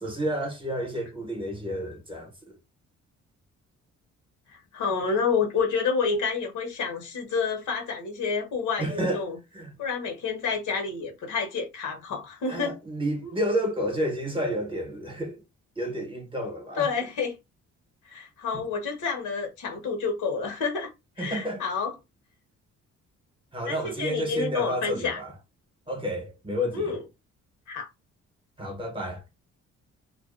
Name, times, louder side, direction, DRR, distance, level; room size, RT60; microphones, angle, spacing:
voice 1, 0.0-2.5 8.8-9.2 9.5-9.7 12.5-15.4 15.8-16.9 18.5-18.6 21.2-21.6 23.5-25.3 25.9-26.9 28.6-29.2, equal, 15° right, 0.9 m, -30 dB
voice 2, 4.5-9.4 9.8-12.7 13.2-13.3 16.8-17.3 18.1-20.9 21.2-21.9 23.6-25.2 26.7-27.0 27.7-27.9, left 5 dB, 80° left, 1.1 m, -29 dB
2.5 x 2.2 x 2.4 m
cardioid pair, 90°, 30 cm